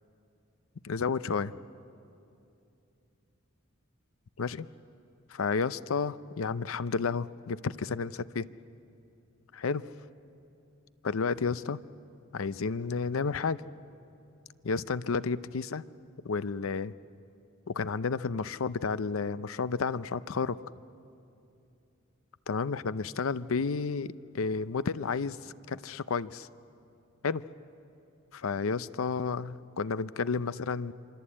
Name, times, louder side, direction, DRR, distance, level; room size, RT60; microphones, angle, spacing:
voice 1, 0.8-1.5 4.4-4.7 5.3-8.5 9.5-9.9 11.0-11.8 12.3-13.6 14.6-15.8 16.2-16.9 17.7-20.6 22.5-26.5 27.2-27.4 28.3-30.9, left 5 dB, 70° left, 16 dB, 0.6 m, -31 dB
26.5 x 25.0 x 8.6 m, 2.7 s
head